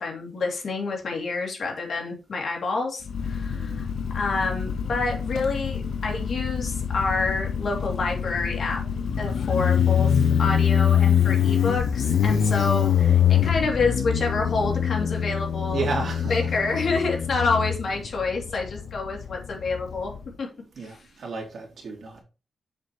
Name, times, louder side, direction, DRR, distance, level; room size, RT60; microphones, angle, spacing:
voice 1, 0.0-3.9 4.1-8.8 9.2-15.8 16.3-20.1 20.4-20.5, left 3 dB, 65° left, 2.7 m, -28 dB
Motorcycle, 3.1-20.3, left 8 dB, 85° left, 0.5 m, -24 dB
voice 2, 3.5-3.8 12.2-12.7 15.7-16.6 20.8-22.2, right 4 dB, 70° right, 2.9 m, -33 dB
7.4 x 6.2 x 3.0 m
wide cardioid pair, 125°, 0 cm